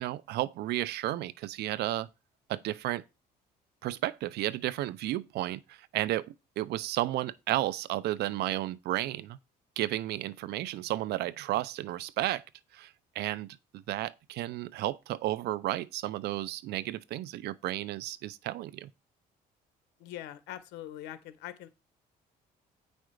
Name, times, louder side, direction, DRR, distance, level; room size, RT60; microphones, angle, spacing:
voice 1, 0.0-2.1 2.5-3.0 3.8-9.4 9.8-12.4 12.7-18.9, right 15 dB, 75° right, 0.7 m, -33 dB
voice 2, 20.0-21.7, left 12 dB, 90° left, 1.5 m, -42 dB
9.1 x 5.3 x 5.0 m
cardioid pair, 110°, 17 cm